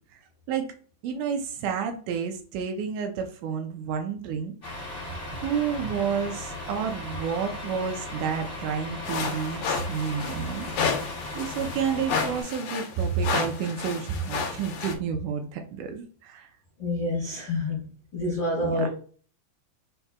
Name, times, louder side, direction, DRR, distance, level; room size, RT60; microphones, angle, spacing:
voice 1, 1.0-4.5 5.3-10.7 11.0-11.1 11.3-16.5 18.6-18.9, right 7 dB, 80° right, 5 dB, 2.0 m, -30 dB
Truck, 4.6-12.4, left 2 dB, 25° left, 1.4 m, -37 dB
sound 1, 9.0-14.9, left 5 dB, 75° left, 2.0 m, -31 dB
voice 2, 16.8-17.8 18.1-18.9, left 1 dB, 40° left, -8 dB, 1.9 m, -27 dB
4.8 x 4.2 x 2.2 m, 0.43 s
omnidirectional pair, 3.9 m